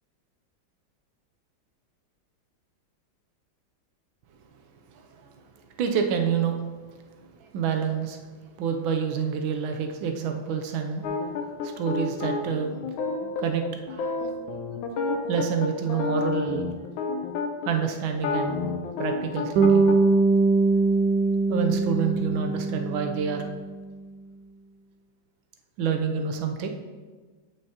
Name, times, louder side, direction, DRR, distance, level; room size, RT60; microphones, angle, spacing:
voice 1, 4.9-5.3 5.8-6.6 7.4-8.2 8.6-11.1 11.6-12.8 13.4-14.3 15.3-16.7 17.7-18.7 19.0-19.9 21.5-23.5 25.8-26.7, right 7 dB, 85° right, 4 dB, 1.5 m, -28 dB
sound 1, 11.0-17.7 18.1-20.0, left 4 dB, 80° left, 1.5 m, -29 dB
Bass guitar, 19.6-23.8, right 3 dB, 70° right, 1.3 m, -22 dB
8.6 x 6.7 x 2.9 m, 1.4 s
omnidirectional pair, 2.2 m